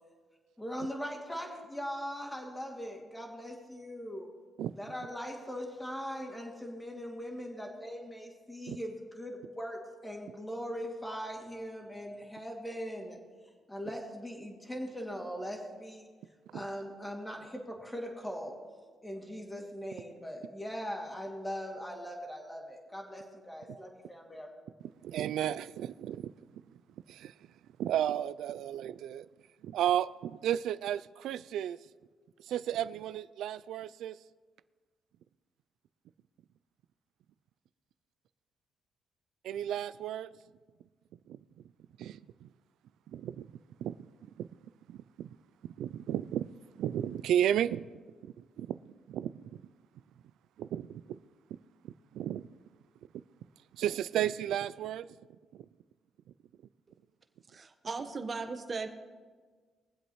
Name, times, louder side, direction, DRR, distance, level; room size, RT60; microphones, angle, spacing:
voice 1, 0.6-4.3 4.8-13.2 13.7-16.1 16.5-18.6 19.0-24.5, equal, 10° left, 0 dB, 2.4 m, -40 dB
voice 2, 25.0-26.3 27.1-27.3 27.8-29.3 29.6-31.8 32.4-34.2 39.4-40.3 41.3-41.4 42.0-42.5 43.1-43.5 43.8-44.0 44.4-44.5 44.9-45.4 45.8-46.5 46.8-47.9 48.4-48.8 49.1-49.6 50.6-51.2 51.8-52.4 53.7-55.1 55.5-55.6, right 11 dB, 80° right, 17 dB, 0.3 m, -33 dB
voice 3, 57.5-58.9, right 4 dB, 35° right, 6 dB, 1.1 m, -37 dB
22.5 x 7.9 x 3.1 m, 1.5 s
cardioid pair, 90°, 0 cm